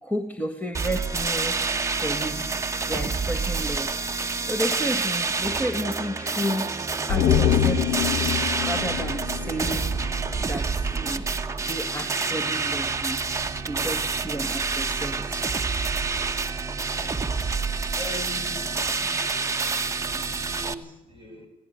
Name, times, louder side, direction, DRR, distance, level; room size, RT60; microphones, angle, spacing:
voice 1, 0.0-1.6 1.9-2.5 2.9-4.0 4.4-6.7 7.1-8.3 8.6-10.0 10.4-11.3 11.6-13.2 13.7-15.5, equal, 10° left, 3 dB, 1.9 m, -32 dB
sound 1, 0.7-20.7, right 4 dB, 15° right, 1.3 m, -28 dB
sound 2, 7.1-10.5 10.8-10.9, left 9 dB, 65° left, 1.3 m, -25 dB
voice 2, 17.9-18.7 19.1-21.5, left 1 dB, 30° left, 3 dB, 6.7 m, -42 dB
17.5 x 17.0 x 9.1 m, 0.85 s
cardioid pair, 110°, 17 cm